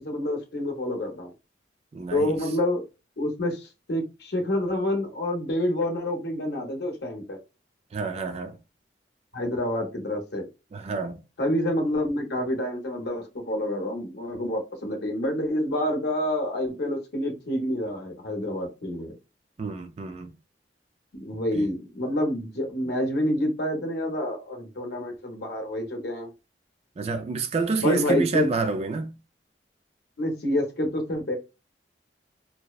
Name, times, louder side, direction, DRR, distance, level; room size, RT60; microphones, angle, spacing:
voice 1, 0.0-1.3 2.1-2.8 3.2-7.4 9.3-10.5 11.4-19.2 21.1-26.3 27.8-28.5 30.2-31.3, left 1 dB, 65° left, 0.7 m, -28 dB
voice 2, 1.9-2.4 7.9-8.6 10.7-11.2 19.6-20.3 21.5-21.7 27.0-29.2, right 4 dB, 35° right, 0.3 m, -28 dB
2.6 x 2.0 x 2.3 m
head